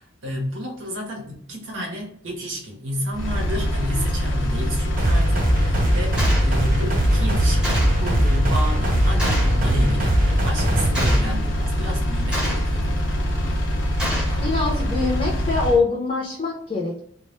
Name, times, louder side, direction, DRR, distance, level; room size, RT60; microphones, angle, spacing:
voice 1, 0.0-13.6 14.0-14.6, equal, 85° right, 0 dB, 0.7 m, -31 dB
Engine, 3.1-15.8, equal, 80° left, 0.6 m, -24 dB
sound 1, 5.0-11.2, right 1 dB, 45° right, 0.6 m, -21 dB
Gunshot gunfire, 6.2-6.5 7.6-8.0 9.2-9.6 10.9-11.4 12.3-12.8 14.0-14.4, equal, 5° right, 0.6 m, -28 dB
voice 2, 14.4-17.0, left 3 dB, 35° left, -3 dB, 0.5 m, -23 dB
2.1 x 2.0 x 2.9 m, 0.63 s
head